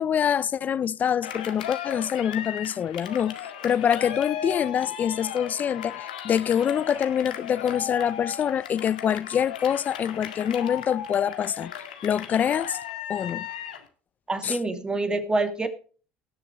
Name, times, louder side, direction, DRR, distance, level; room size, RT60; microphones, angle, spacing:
voice 1, 0.0-3.4 3.6-11.7 12.0-12.8 13.1-13.5 14.4-14.6, left 8 dB, 40° left, 0.5 m, -25 dB
Cheering, 1.2-13.9, left 9 dB, 90° left, 1.9 m, -36 dB
voice 2, 14.3-15.7, right 2 dB, 20° right, 2.4 m, -26 dB
18.5 x 6.6 x 4.9 m
hypercardioid pair, 75°, 4 cm